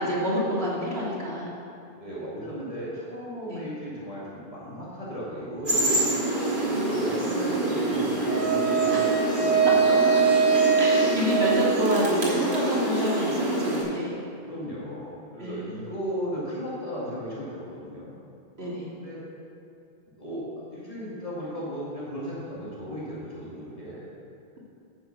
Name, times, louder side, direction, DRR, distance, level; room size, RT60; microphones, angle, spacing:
voice 1, 0.0-1.5 3.5-3.6 8.9-9.1 10.8-14.2 15.4-15.7 18.6-18.9, left 1 dB, 80° right, -5 dB, 2.3 m, -28 dB
voice 2, 2.0-5.9 6.5-10.4 14.4-18.1 18.9-19.2 20.2-24.1, equal, 35° left, -8 dB, 2.3 m, -36 dB
sound 1, 5.7-13.8, right 2 dB, 55° right, 2.3 m, -26 dB
Wind instrument woodwind instrument, 8.3-12.4, right 6 dB, 55° left, 2.4 m, -23 dB
9.4 x 6.2 x 7.1 m, 2.6 s
omnidirectional pair, 1.0 m